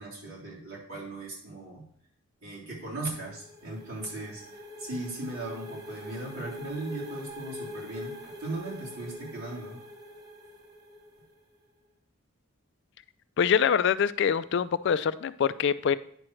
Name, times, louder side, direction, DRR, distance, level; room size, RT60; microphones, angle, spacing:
voice 1, 0.0-1.9 2.4-9.8, right 2 dB, 80° right, -6 dB, 3.5 m, -38 dB
sound 1, 2.7-11.4, left 1 dB, 20° right, 0.8 m, -43 dB
voice 2, 13.4-16.0, left 7 dB, 55° left, 16 dB, 0.3 m, -24 dB
9.6 x 6.2 x 3.2 m, 0.64 s
head